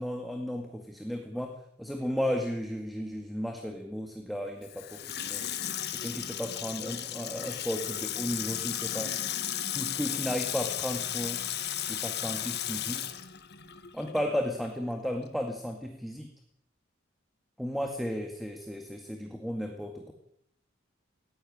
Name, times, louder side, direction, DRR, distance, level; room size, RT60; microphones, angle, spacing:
voice 1, 0.0-5.5 5.9-9.2 9.7-11.5 11.9-13.1 13.9-16.3 17.6-20.1, equal, ahead, 3 dB, 2.0 m, -34 dB
Water tap faucet / Sink (filling or washing), 4.6-14.3 14.6-14.7, left 11 dB, 55° left, 1.6 m, -35 dB
19.5 x 15.5 x 8.8 m, 0.71 s
head